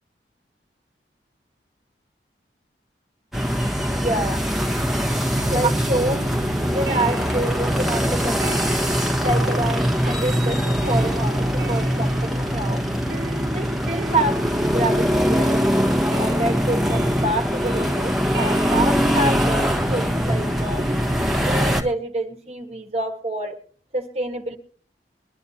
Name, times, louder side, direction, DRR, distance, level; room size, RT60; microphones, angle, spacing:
sound 1, 3.3-21.8, equal, ahead, 1.3 m, -22 dB
voice 1, 3.9-4.4 5.4-6.2 6.6-8.7 9.2-12.8 13.5-15.7 16.1-20.8 21.3-23.5 23.9-24.6, right 1 dB, 35° right, 4 dB, 1.4 m, -27 dB
sound 2, 5.4-21.9, right 2 dB, 75° right, 1.1 m, -34 dB
22.0 x 11.5 x 2.8 m, 0.43 s
head